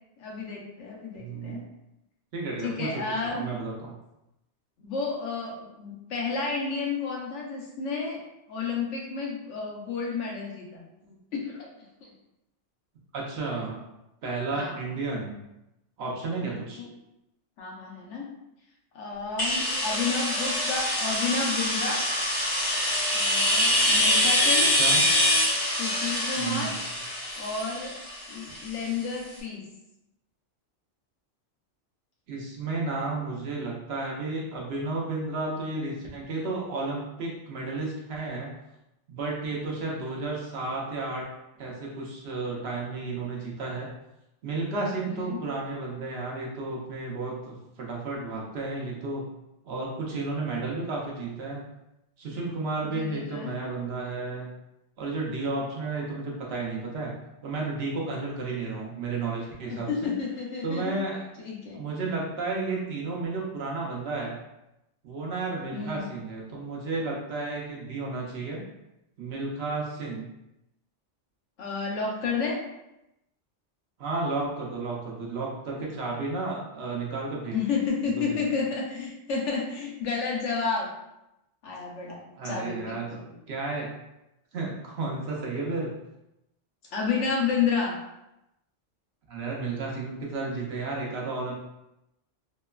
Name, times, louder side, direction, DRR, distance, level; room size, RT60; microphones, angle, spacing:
voice 1, 0.2-1.6 2.6-3.4 4.8-8.2 8.5-10.8 11.3-11.7 12.0-12.1 14.5-14.8 16.4-16.9 17.6-18.3 18.9-22.0 23.1-24.7 25.6-26.7 27.3-28.0 28.3-29.6 45.1-45.4 52.9-53.6 59.7-60.9 61.4-61.8 65.7-66.0 71.6-72.6 77.5-80.9 81.6-83.3 86.9-88.0, left 5 dB, 80° left, -2 dB, 1.0 m, -31 dB
voice 2, 1.2-1.6 2.3-4.0 11.0-11.2 13.1-13.8 14.2-15.4 16.0-16.8 24.8-25.0 26.4-26.8 32.3-38.5 39.1-41.3 41.6-43.9 44.4-49.2 49.6-51.6 52.2-54.5 55.0-57.1 57.4-60.1 60.6-61.3 61.7-64.4 65.0-68.6 69.2-70.3 74.0-77.6 78.2-78.4 82.4-83.2 83.5-83.9 84.5-85.9 89.3-91.5, right 3 dB, 65° right, -3 dB, 0.8 m, -32 dB
sound 1, 19.4-29.0, left 1 dB, 40° left, 0.8 m, -25 dB
3.0 x 2.1 x 2.3 m, 0.89 s
omnidirectional pair, 1.2 m